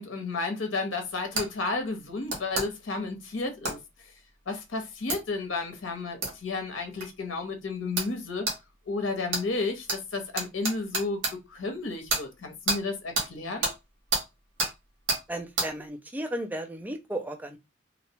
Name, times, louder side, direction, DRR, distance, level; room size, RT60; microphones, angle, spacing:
voice 1, 0.0-3.8 4.5-8.5 8.9-13.7, left 3 dB, 75° left, 0.7 m, -32 dB
sound 1, 1.4-1.5 2.3-2.7 3.6-3.8 5.1-5.2 6.2-6.3 7.0-7.1 8.0-8.1 8.5-8.6 9.3-9.4 9.9-10.0 10.4-11.3 12.1-12.2 12.7-12.8 13.1-13.3 13.6-13.8 14.1-14.2 14.6-14.7 15.1-15.2 15.6-15.7, right 3 dB, 75° right, 1.1 m, -28 dB
voice 2, 15.3-17.6, right 1 dB, 10° right, 0.4 m, -34 dB
2.6 x 2.0 x 2.7 m
head